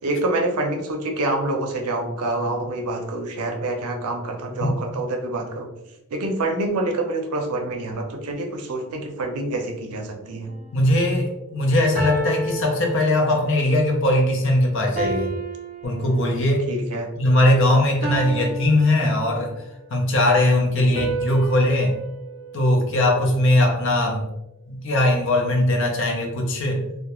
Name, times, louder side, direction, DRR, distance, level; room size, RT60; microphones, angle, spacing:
voice 1, 0.0-5.7 6.1-10.5 16.7-17.1 20.7-21.1, right 2 dB, 90° right, 3 dB, 0.5 m, -27 dB
sound 1, 10.5-10.8 12.0-13.6 15.0-16.6 18.0-19.6 21.0-23.4, right 3 dB, 35° right, 0.4 m, -32 dB
voice 2, 10.7-15.3 15.8-16.7 17.2-19.5 19.9-22.0 22.5-24.3 24.7-26.9, left 1 dB, 60° left, 2 dB, 0.5 m, -20 dB
2.2 x 2.1 x 2.9 m, 0.91 s
head